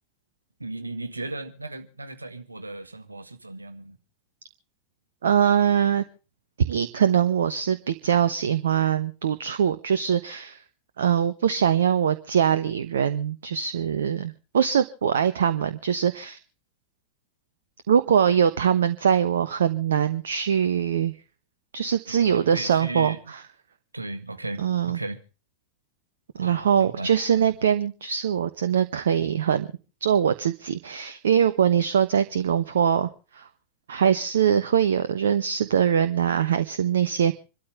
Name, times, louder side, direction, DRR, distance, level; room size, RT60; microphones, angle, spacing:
voice 1, 0.6-4.0 22.1-23.2 23.9-25.2 26.4-27.5, right 2 dB, 80° right, 1.8 m, -36 dB
voice 2, 5.2-6.0 6.6-10.6 11.0-16.4 17.9-21.1 21.7-23.4 24.6-25.0 26.4-29.7 30.0-33.5 33.9-37.3, right 8 dB, 65° right, 1.0 m, -22 dB
26.5 x 13.0 x 3.5 m
figure-of-eight pair, 90°, 0 cm